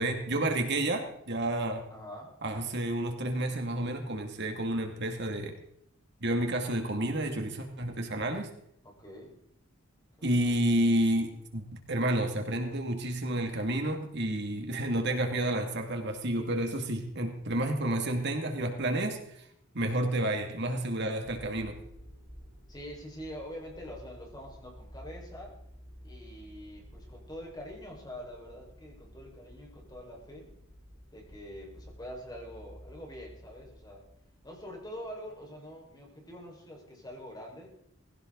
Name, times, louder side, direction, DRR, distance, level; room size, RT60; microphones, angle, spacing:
voice 1, 0.0-1.8 2.4-5.5 6.2-8.5 10.2-19.4 19.7-21.8, right 1 dB, 60° right, 4 dB, 2.5 m, -30 dB
voice 2, 1.9-2.4 8.8-9.4 10.2-10.6 22.7-25.6 26.0-30.5 31.1-34.1 34.4-37.7, equal, 20° left, -1 dB, 5.3 m, -45 dB
sound 1, 21.2-35.5, equal, 5° left, 7.0 m, -52 dB
20.0 x 17.0 x 4.1 m, 0.74 s
head